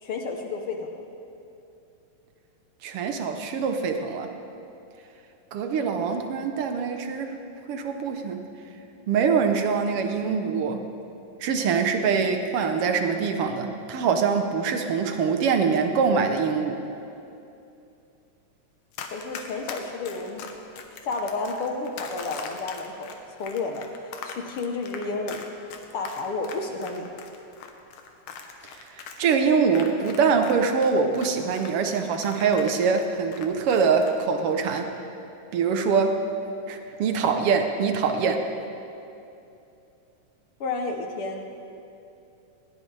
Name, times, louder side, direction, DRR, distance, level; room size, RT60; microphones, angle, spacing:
voice 1, 0.0-0.9 19.1-20.4 21.0-23.1 23.4-23.9 24.2-25.5 25.9-27.1 40.6-41.5, left 3 dB, 65° left, 3 dB, 1.4 m, -31 dB
voice 2, 2.8-4.3 5.5-7.3 7.7-8.4 9.1-10.8 11.4-16.8 28.9-34.9 35.5-36.2 36.7-38.4, right 5 dB, 70° right, 5 dB, 1.4 m, -24 dB
Run, 18.9-30.5 30.8-34.2 34.5-34.8, left 6 dB, 80° left, 2.6 m, -41 dB
20.0 x 18.5 x 3.4 m, 2.7 s
omnidirectional pair, 3.6 m